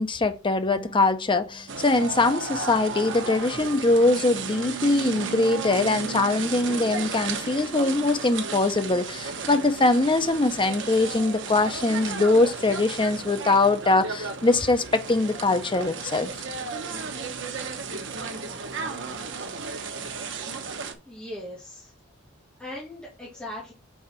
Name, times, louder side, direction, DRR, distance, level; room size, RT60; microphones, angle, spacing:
voice 1, 0.0-16.3, left 2 dB, 25° left, 0.7 m, -22 dB
sound 1, 0.7-3.8, right 3 dB, 85° left, 2.5 m, -51 dB
sound 2, 1.7-20.9, right 4 dB, 65° right, 1.0 m, -34 dB
voice 2, 21.1-21.9 22.6-23.7, left 1 dB, 5° left, 1.9 m, -39 dB
5.6 x 3.8 x 5.8 m
head